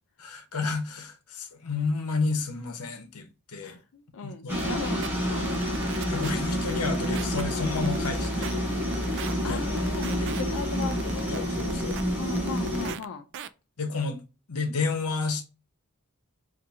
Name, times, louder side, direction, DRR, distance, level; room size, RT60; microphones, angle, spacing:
voice 1, 0.2-3.3 3.5-3.8 4.2-4.8 6.1-8.6 9.5-9.8 10.2-10.4 11.3-12.0 13.8-14.2 14.5-15.4, left 4 dB, 80° left, 0.9 m, -31 dB
voice 2, 3.6-5.0 5.3-5.6 9.4-11.3 12.2-13.3, left 5 dB, 60° left, 0.4 m, -37 dB
sound 1, 4.5-12.9, equal, 10° right, 1.6 m, -28 dB
sound 2, 4.6-4.7 5.0-5.1 5.5-6.3 6.6-7.4 7.8-8.6 8.9-9.3 9.8-10.4 10.8-12.0 12.4-13.1 13.3-13.5, right 10 dB, 55° right, 0.3 m, -38 dB
4.1 x 2.6 x 3.6 m
head